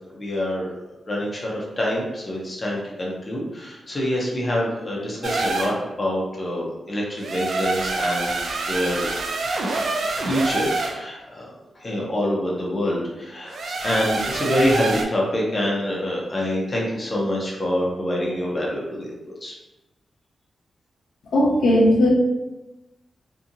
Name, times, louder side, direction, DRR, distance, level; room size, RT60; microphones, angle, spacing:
voice 1, 0.1-0.7 1.1-8.4 8.7-9.1 9.6-9.8 10.2-19.5, left 1 dB, 30° left, -3 dB, 0.5 m, -26 dB
sound 1, 5.2-5.8 7.2-11.0 13.5-15.0, right 3 dB, 60° right, 0.3 m, -26 dB
voice 2, 21.3-22.1, left 1 dB, 85° left, -3 dB, 0.5 m, -17 dB
2.6 x 2.6 x 2.6 m, 1.0 s
wide cardioid pair, 170°, 0 cm